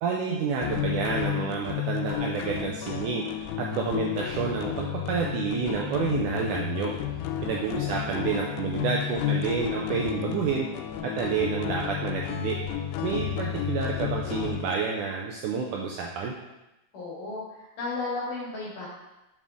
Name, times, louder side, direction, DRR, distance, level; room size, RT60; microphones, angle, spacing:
voice 1, 0.0-6.9 7.4-10.7 11.0-16.3, right 6 dB, 90° right, -1 dB, 1.8 m, -29 dB
sound 1, 0.6-14.7, left 10 dB, 90° left, 2.5 m, -32 dB
voice 2, 7.3-8.3 16.9-18.9, left 3 dB, 60° left, -6 dB, 3.8 m, -35 dB
7.4 x 5.4 x 3.6 m, 0.96 s
omnidirectional pair, 4.3 m